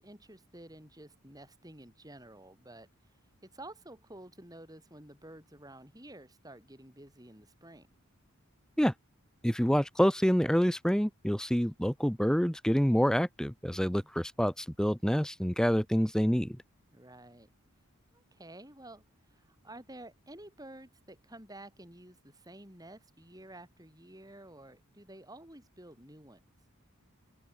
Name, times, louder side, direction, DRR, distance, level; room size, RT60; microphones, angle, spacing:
voice 1, 0.0-2.9 3.4-7.9 13.7-14.1 16.9-17.5 18.1-26.4, right 1 dB, 15° right, 6.0 m, -51 dB
voice 2, 9.4-16.6, equal, 5° left, 1.4 m, -27 dB
head